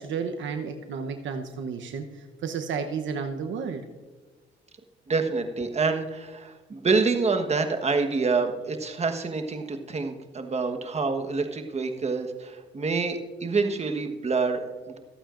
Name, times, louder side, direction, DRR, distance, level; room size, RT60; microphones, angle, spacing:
voice 1, 0.0-3.8, right 5 dB, 70° right, 6 dB, 0.9 m, -32 dB
voice 2, 5.1-15.0, right 4 dB, 35° right, 6 dB, 1.3 m, -27 dB
25.0 x 8.7 x 2.5 m, 1.3 s
cardioid pair, 90°, 20 cm